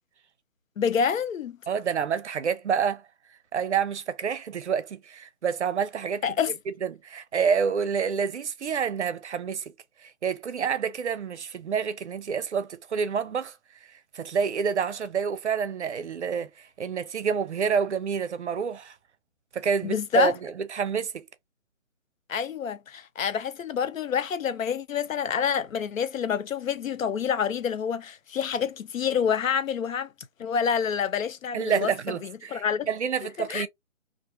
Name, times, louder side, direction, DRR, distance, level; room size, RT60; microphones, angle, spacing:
voice 1, 0.8-1.6 6.2-6.5 19.8-20.3 22.3-30.1 30.4-31.9 32.2-32.9 33.5-33.7, left 7 dB, 90° left, 0.5 m, -27 dB
voice 2, 1.7-3.0 3.5-6.2 6.7-9.7 10.0-13.6 13.9-18.9 19.5-21.3 31.5-33.7, right 6 dB, 60° right, 0.5 m, -28 dB
2.5 x 2.2 x 2.5 m
figure-of-eight pair, 160°, 39 cm